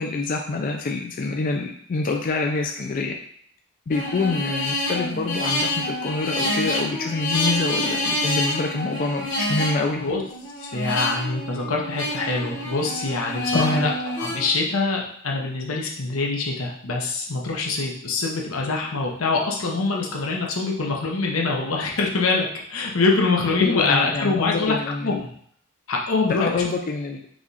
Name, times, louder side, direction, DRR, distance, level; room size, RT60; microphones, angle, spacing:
voice 1, 0.0-3.2 3.9-10.0 13.5-13.9 23.6-25.2 26.4-27.2, left 3 dB, 40° left, 2 dB, 0.3 m, -26 dB
sound 1, 3.9-14.5, left 1 dB, 60° left, 1.6 m, -27 dB
voice 2, 10.6-13.9 14.2-24.7 25.0-25.3 25.9-26.7, left 3 dB, 90° left, -1 dB, 0.9 m, -24 dB
4.8 x 2.4 x 4.0 m, 0.64 s
head